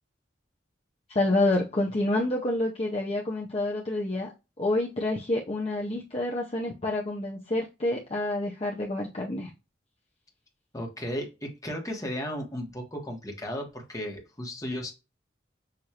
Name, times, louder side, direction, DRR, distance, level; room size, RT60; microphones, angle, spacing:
voice 1, 1.1-4.3 4.6-9.5, left 2 dB, 35° left, 0.7 m, -28 dB
voice 2, 10.7-14.9, equal, 20° left, 1.2 m, -35 dB
6.6 x 2.6 x 2.9 m
head